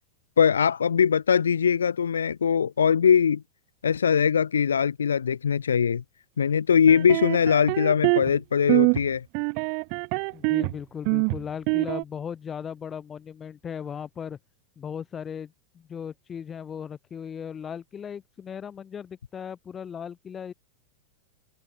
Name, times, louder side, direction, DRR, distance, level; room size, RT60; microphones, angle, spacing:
voice 1, 0.4-3.4 3.8-6.0 6.4-9.2, left 7 dB, 70° left, 0.7 m, -21 dB
sound 1, 6.9-8.4 8.7-9.0 9.3-10.7 11.0-12.0, right 40 dB or more, 45° right, 1.1 m, -24 dB
voice 2, 10.3-14.4 14.8-20.5, left 7 dB, 20° left, 8.0 m, -37 dB
open air
figure-of-eight pair, 90°, 0 cm